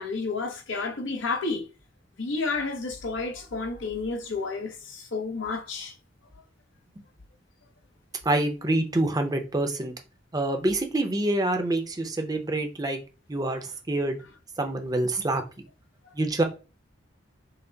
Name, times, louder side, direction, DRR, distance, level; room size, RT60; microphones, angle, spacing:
voice 1, 0.0-1.6 2.2-5.9, left 3 dB, 75° left, 0.7 m, -31 dB
voice 2, 8.2-9.9 10.3-13.0 13.3-14.2 14.6-15.4 16.1-16.4, right 2 dB, 20° right, 0.6 m, -26 dB
5.7 x 2.0 x 3.9 m
head